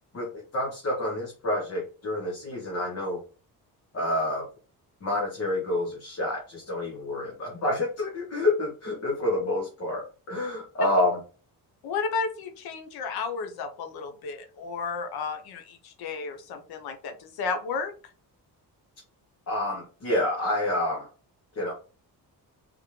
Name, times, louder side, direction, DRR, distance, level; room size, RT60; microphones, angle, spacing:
voice 1, 0.1-3.2 3.9-4.5 5.0-11.2 19.5-21.1 21.6-21.7, left 1 dB, 40° left, 0 dB, 1.0 m, -28 dB
voice 2, 11.8-17.9, left 4 dB, 70° left, 7 dB, 0.8 m, -33 dB
3.6 x 3.4 x 3.1 m, 0.37 s
cardioid pair, 180°, 39 cm